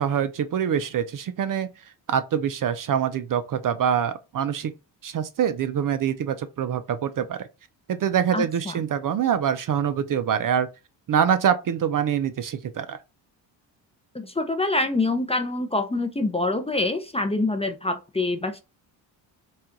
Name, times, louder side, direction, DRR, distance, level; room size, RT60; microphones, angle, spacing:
voice 1, 0.0-1.7 2.1-4.7 5.0-7.5 7.9-10.7 11.1-13.0, right 8 dB, 45° right, 0.5 m, -25 dB
voice 2, 8.3-8.8 14.1-18.6, left 2 dB, 15° left, 0.5 m, -25 dB
4.2 x 2.4 x 3.7 m
cardioid pair, 85°, 47 cm